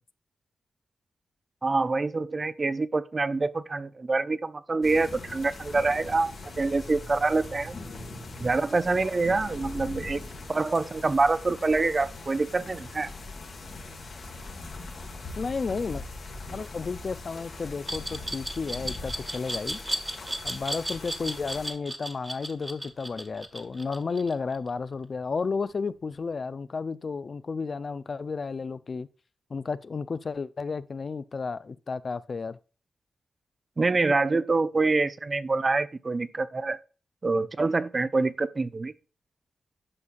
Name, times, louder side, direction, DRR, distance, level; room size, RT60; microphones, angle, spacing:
voice 1, 1.6-7.8 8.4-10.2 10.5-13.1 33.8-36.8 37.2-38.9, right 3 dB, 40° right, 0.5 m, -26 dB
sound 1, 4.8-21.7, left 3 dB, 75° left, 1.9 m, -41 dB
voice 2, 15.4-16.0 16.5-19.8 20.4-29.1 29.5-32.6, left 4 dB, 55° left, 0.4 m, -32 dB
Glass, 17.9-24.7, right 1 dB, 15° right, 1.1 m, -34 dB
9.7 x 5.7 x 2.5 m
cardioid pair, 65°, 0 cm